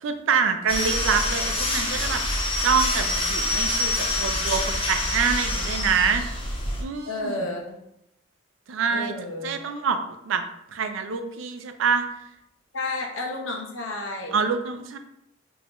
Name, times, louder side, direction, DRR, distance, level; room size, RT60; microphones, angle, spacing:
voice 1, 0.0-2.2 2.6-6.2 6.8-7.5 8.7-9.1 9.4-10.0 10.2-10.4 10.7-12.1 14.3-15.0, right 6 dB, 80° right, 7 dB, 0.4 m, -26 dB
sound 1, 0.7-6.8, left 2 dB, 25° left, 0.6 m, -26 dB
voice 2, 7.1-7.8 8.9-9.6 12.7-14.4, left 2 dB, 85° left, 2 dB, 0.7 m, -31 dB
3.8 x 2.6 x 2.9 m, 0.83 s
head